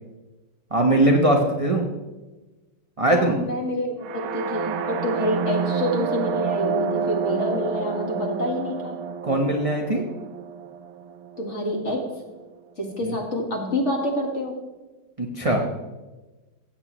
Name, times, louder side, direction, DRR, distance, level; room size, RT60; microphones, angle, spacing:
voice 1, 0.7-1.9 3.0-3.4 9.2-10.0 13.0-13.1 15.2-15.6, right 1 dB, 40° right, 0 dB, 0.5 m, -20 dB
voice 2, 3.1-9.0 11.4-12.1 12.8-14.6, equal, 35° left, 0 dB, 1.9 m, -27 dB
sound 1, 4.0-11.9, right 6 dB, 80° right, 1.6 m, -29 dB
15.5 x 8.7 x 3.0 m, 1.1 s
omnidirectional pair, 2.3 m